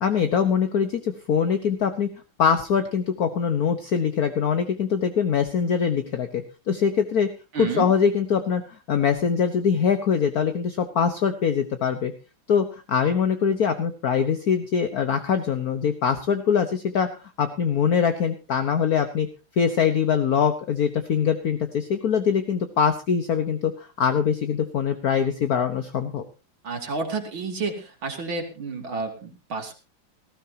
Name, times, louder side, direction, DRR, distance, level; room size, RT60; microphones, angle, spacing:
voice 1, 0.0-2.1 2.4-7.3 7.6-12.1 12.5-17.1 17.4-19.3 19.6-26.2, left 7 dB, 55° left, 8 dB, 1.5 m, -23 dB
voice 2, 7.5-7.9 26.6-29.7, right 4 dB, 85° right, 3 dB, 3.7 m, -30 dB
18.5 x 15.5 x 2.8 m, 0.31 s
omnidirectional pair, 2.1 m